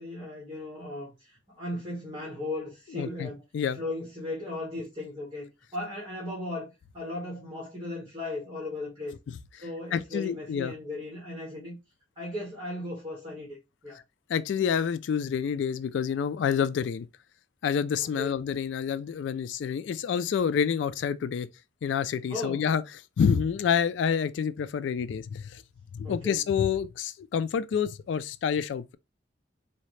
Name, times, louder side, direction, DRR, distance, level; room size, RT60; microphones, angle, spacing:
voice 1, 0.0-3.4 3.7-9.2 9.6-11.7 12.2-13.6 13.8-14.0 18.0-18.4 22.3-22.7 26.0-26.4, left 2 dB, 25° right, 1.8 m, -37 dB
voice 2, 3.0-3.3 3.5-3.8 9.9-10.7 14.3-17.1 17.6-21.5 21.8-22.8 23.2-25.6 25.9-29.0, left 7 dB, 75° left, 0.3 m, -28 dB
4.0 x 2.8 x 3.1 m
head